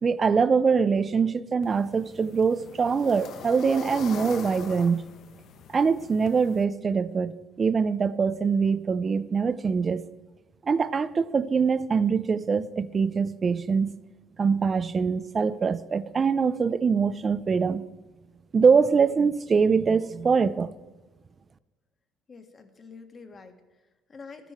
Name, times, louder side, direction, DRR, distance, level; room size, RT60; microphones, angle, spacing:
voice 1, 0.0-5.0 5.7-10.1 10.7-13.9 14.4-17.8 18.5-20.7, right 5 dB, 35° right, 0.5 m, -23 dB
sound 1, 1.6-6.6, left 7 dB, 60° left, 0.9 m, -42 dB
voice 2, 22.3-24.5, left 4 dB, 35° left, 1.5 m, -47 dB
12.5 x 10.0 x 4.4 m
cardioid pair, 95°, 0 cm